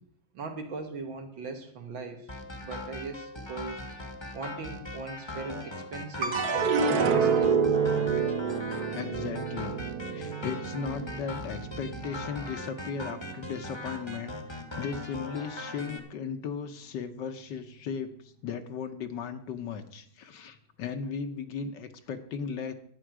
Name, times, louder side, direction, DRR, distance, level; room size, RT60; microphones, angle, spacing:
voice 1, 0.3-2.3 2.6-3.8 4.3-7.5, right 4 dB, 75° right, 4 dB, 2.3 m, -39 dB
whats that smelly feindly noize, 2.3-16.0, left 1 dB, 20° left, 0.9 m, -40 dB
sound 1, 6.2-12.7 13.1-13.8, right 5 dB, 55° right, 1.5 m, -28 dB
voice 2, 8.9-9.8 10.1-18.1 18.4-22.7, left 6 dB, 65° left, 8 dB, 1.5 m, -36 dB
11.0 x 9.0 x 6.1 m, 0.62 s
omnidirectional pair, 2.2 m